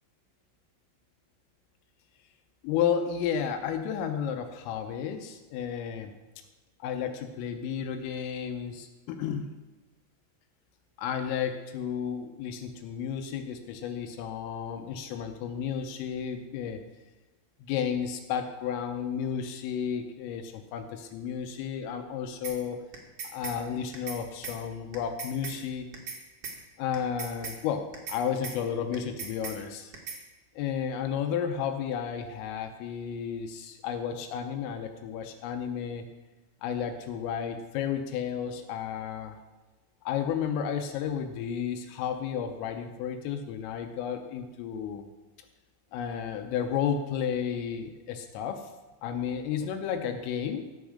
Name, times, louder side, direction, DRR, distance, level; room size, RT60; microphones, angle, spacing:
voice 1, 2.6-6.1 6.8-9.5 11.0-16.8 17.6-22.8 23.3-25.9 26.8-29.9 30.6-36.1 36.6-39.4 40.0-45.1 45.9-48.7 49.0-50.7, left 8 dB, 80° left, 6 dB, 3.4 m, -32 dB
sound 1, 22.4-22.6 22.9-23.6 23.9-24.2 24.4-24.6 24.9-25.6 25.9-26.2 26.4-26.6 26.9-27.6 27.9-28.2 28.4-28.6 28.9-29.6 29.9-30.2, right 5 dB, 70° right, 1.3 m, -38 dB
15.5 x 6.2 x 6.4 m, 1.2 s
omnidirectional pair, 6.0 m